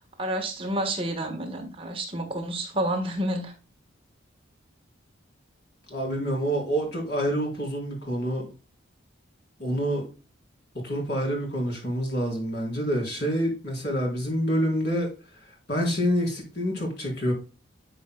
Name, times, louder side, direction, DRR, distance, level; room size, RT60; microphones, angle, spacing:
voice 1, 0.2-3.5, right 1 dB, 25° right, 1.4 m, -29 dB
voice 2, 5.9-8.5 9.6-10.1 10.8-15.1 15.4-17.3, equal, 55° left, 3.9 m, -27 dB
11.5 x 5.5 x 2.3 m
head